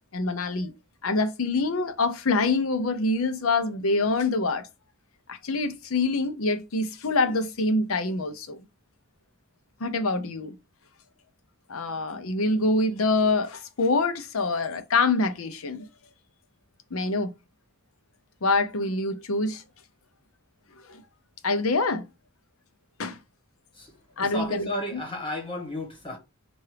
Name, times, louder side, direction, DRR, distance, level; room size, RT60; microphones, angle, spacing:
voice 1, 0.1-0.7 1.0-4.6 5.3-8.6 9.8-10.5 11.7-15.8 16.9-17.3 18.4-19.6 20.9-21.0 21.4-22.0 23.0-23.2 24.2-25.0, left 3 dB, 80° left, 0.7 m, -25 dB
voice 2, 23.7-26.2, left 1 dB, 25° left, 1.5 m, -33 dB
5.6 x 2.6 x 3.3 m
head